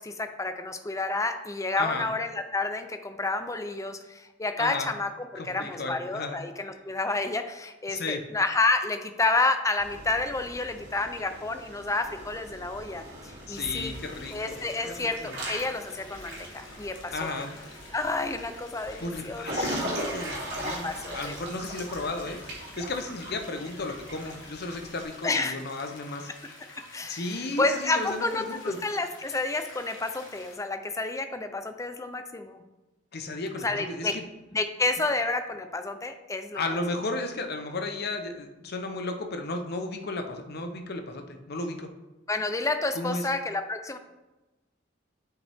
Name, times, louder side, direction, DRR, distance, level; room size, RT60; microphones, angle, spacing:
voice 1, 0.0-13.9 14.3-17.3 17.9-19.7 20.6-21.4 21.8-21.9 25.2-25.8 26.9-32.6 33.6-34.1 34.5-36.8 42.3-44.0, left 3 dB, 15° left, 8 dB, 0.5 m, -30 dB
voice 2, 5.3-6.4 7.9-8.2 13.5-15.3 17.1-17.5 19.0-22.4 22.8-26.3 27.1-28.8 33.1-34.2 36.5-41.9 42.9-43.3, left 2 dB, 55° left, 6 dB, 0.8 m, -34 dB
Water / Splash splatter / Drip, 9.8-25.0, equal, 55° right, 2.7 m, -39 dB
sound 1, 13.5-30.6, left 2 dB, 70° left, 1.5 m, -49 dB
8.2 x 5.7 x 3.5 m, 1.1 s
head